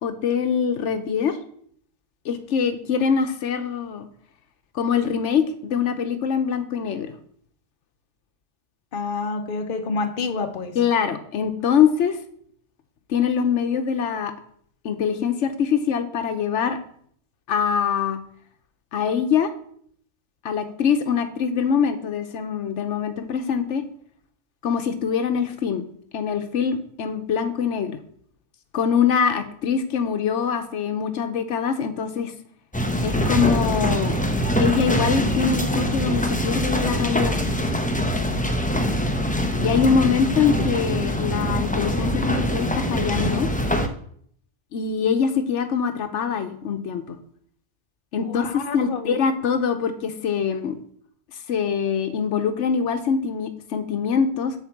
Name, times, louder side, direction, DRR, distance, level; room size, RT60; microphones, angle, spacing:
voice 1, 0.0-1.4 2.2-4.1 4.7-7.1 10.8-12.2 13.1-14.3 14.8-16.8 17.5-18.2 18.9-19.5 20.4-23.8 24.6-25.8 26.1-28.0 28.7-32.3 33.0-34.2 34.6-37.4 39.6-43.5 44.7-47.2 48.1-50.8 51.5-54.5, left 7 dB, 90° left, 1.1 m, -23 dB
voice 2, 8.9-10.8 48.2-49.2, left 4 dB, 50° left, 1.0 m, -28 dB
sound 1, 32.7-43.9, equal, 10° left, 0.7 m, -23 dB
8.1 x 4.4 x 7.2 m
omnidirectional pair, 1.2 m